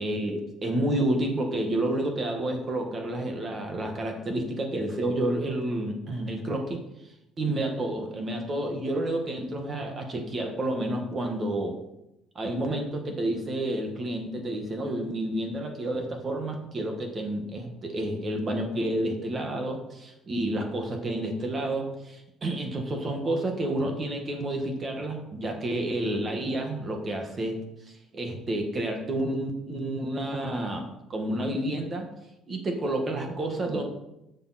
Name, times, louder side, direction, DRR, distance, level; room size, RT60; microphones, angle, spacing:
voice 1, 0.0-6.8 7.4-11.8 12.3-27.6 28.1-32.1 32.5-33.8, right 1 dB, 25° right, 3 dB, 1.6 m, -30 dB
12.0 x 6.9 x 4.2 m, 0.88 s
cardioid pair, 170°, 0 cm